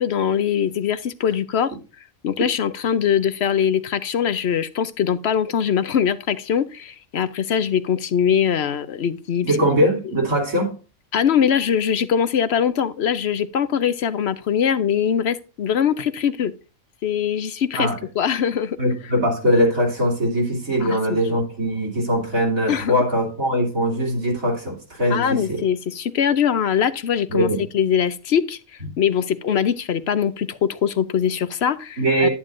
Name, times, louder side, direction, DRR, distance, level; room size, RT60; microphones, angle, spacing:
voice 1, 0.0-1.7 2.2-9.5 11.1-16.5 17.0-17.9 18.2-18.8 20.8-21.4 22.7-23.0 25.1-28.6 29.0-32.3, left 8 dB, 60° left, 0.8 m, -22 dB
voice 2, 9.4-10.7 17.8-18.0 18.8-25.6 27.3-27.6 32.0-32.3, equal, 80° right, 3.3 m, -21 dB
11.0 x 9.1 x 2.5 m
omnidirectional pair, 1.4 m